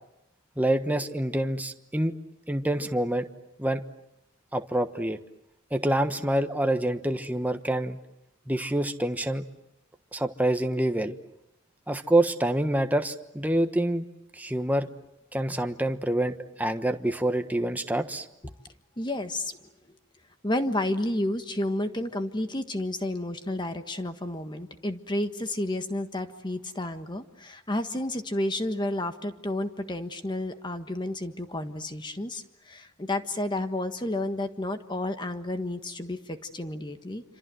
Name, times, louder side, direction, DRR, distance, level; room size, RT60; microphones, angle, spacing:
voice 1, 0.6-2.1 2.5-3.3 3.6-3.8 4.5-5.2 5.7-8.0 8.5-9.4 10.1-11.2 11.9-14.0 14.3-14.9 15.3-18.3, right 1 dB, 10° right, 7 dB, 1.2 m, -26 dB
voice 2, 19.0-19.6 20.4-37.2, left 1 dB, 20° left, 8 dB, 1.5 m, -31 dB
27.5 x 26.5 x 7.8 m, 0.86 s
head